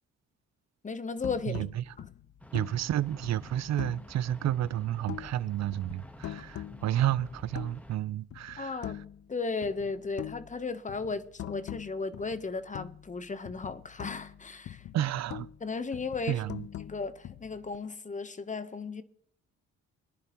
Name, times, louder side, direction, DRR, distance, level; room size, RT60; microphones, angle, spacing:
voice 1, 0.8-1.6 8.6-9.0 9.3-14.8 15.6-16.4 16.8-19.0, left 4 dB, 25° left, 0.9 m, -35 dB
sound 1, 1.2-4.1 4.5-5.5 5.7-8.0 8.3-9.3 9.6-13.2 13.4-15.6 15.9-17.8, left 11 dB, 50° left, 0.5 m, -43 dB
voice 2, 1.5-1.8 2.5-8.9 14.9-15.5 16.3-16.7, right 12 dB, 60° right, 0.6 m, -31 dB
sound 2, 2.4-8.0, left 1 dB, 5° left, 1.2 m, -50 dB
23.5 x 10.5 x 3.0 m
cardioid pair, 90°, 30 cm